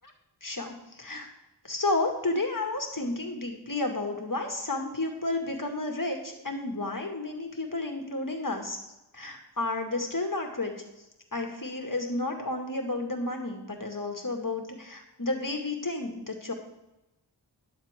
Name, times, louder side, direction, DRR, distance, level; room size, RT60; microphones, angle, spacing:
voice 1, 0.4-1.3 1.6-8.8 9.1-10.7 11.3-16.5, left 2 dB, 50° left, 3 dB, 2.2 m, -31 dB
13.0 x 11.0 x 3.7 m, 0.96 s
wide cardioid pair, 55°, 42 cm